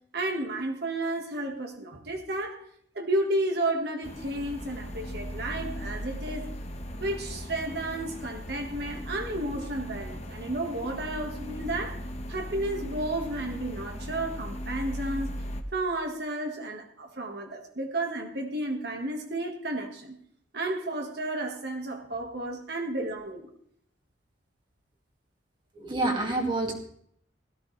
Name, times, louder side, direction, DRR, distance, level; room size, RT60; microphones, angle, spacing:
voice 1, 0.1-2.6 2.9-6.5 7.0-12.0 12.3-15.3 15.7-20.2 20.5-23.5, right 1 dB, 60° right, 3 dB, 1.8 m, -32 dB
sound 1, 4.0-15.6, equal, 35° left, 1.2 m, -38 dB
voice 2, 25.7-26.7, right 2 dB, 25° right, 1 dB, 2.3 m, -27 dB
17.0 x 14.0 x 3.4 m, 0.66 s
head